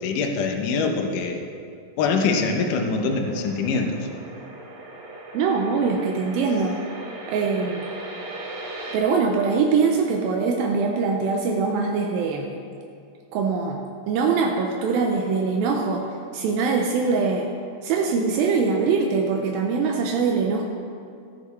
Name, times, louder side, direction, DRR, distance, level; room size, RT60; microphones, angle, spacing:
voice 1, 0.0-1.4 2.0-4.0, left 4 dB, 70° left, 3 dB, 2.2 m, -24 dB
sound 1, 2.1-9.0, right 2 dB, 60° right, 2.0 m, -39 dB
voice 2, 5.3-6.8 7.3-7.9 8.9-12.5 13.3-13.8 14.1-16.1 16.3-17.5 17.8-20.6, right 5 dB, 80° right, 2 dB, 2.4 m, -23 dB
13.5 x 9.8 x 3.2 m, 2.5 s
omnidirectional pair, 4.3 m